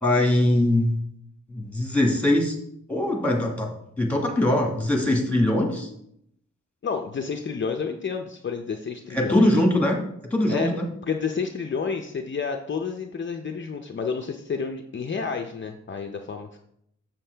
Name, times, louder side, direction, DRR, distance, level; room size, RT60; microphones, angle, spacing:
voice 1, 0.0-1.0 1.5-2.6 2.9-3.7 4.0-5.9 9.1-10.0 10.2-10.8, left 1 dB, 5° left, 1 dB, 1.6 m, -22 dB
voice 2, 6.8-9.6 10.5-10.8 11.1-16.6, left 5 dB, 40° left, 4 dB, 0.5 m, -30 dB
7.3 x 6.9 x 3.4 m, 0.73 s
wide cardioid pair, 110°, 30 cm